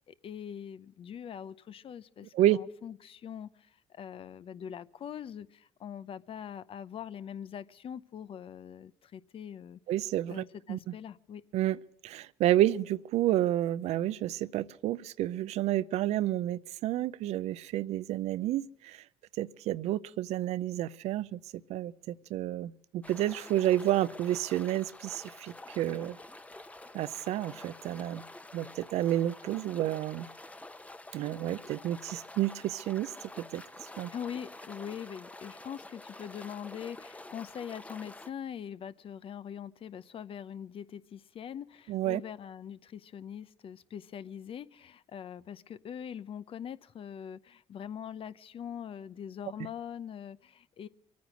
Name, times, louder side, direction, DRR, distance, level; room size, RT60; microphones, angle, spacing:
voice 1, 0.0-9.8 10.3-11.4 34.1-50.9, left 8 dB, 55° left, 0.7 m, -43 dB
voice 2, 9.9-10.8 11.5-11.8 12.0-19.0 19.4-21.4 21.7-26.2 26.9-28.2 28.5-30.3 31.1-33.1 33.4-33.6 34.0-34.1 41.9-42.2, right 13 dB, 75° right, 0.5 m, -30 dB
sound 1, 23.0-38.3, left 2 dB, 10° left, 0.9 m, -48 dB
23.5 x 9.5 x 6.3 m
supercardioid pair, 75°, 11 cm